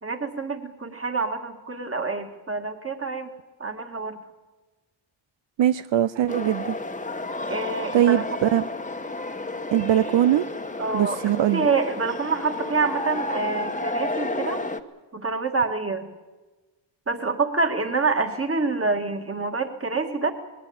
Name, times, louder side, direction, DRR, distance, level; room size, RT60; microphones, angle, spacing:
voice 1, 0.0-3.3 3.6-4.2 7.5-8.3 10.8-14.6 15.1-16.1 17.1-20.3, right 4 dB, 30° right, 5 dB, 2.1 m, -27 dB
voice 2, 5.6-6.8 7.9-8.6 9.7-10.4 10.9-11.7, right 11 dB, 75° right, 13 dB, 0.6 m, -21 dB
sound 1, 6.3-14.8, left 2 dB, 15° left, 1.1 m, -31 dB
20.5 x 17.0 x 8.9 m, 1.3 s
cardioid pair, 70°, 45 cm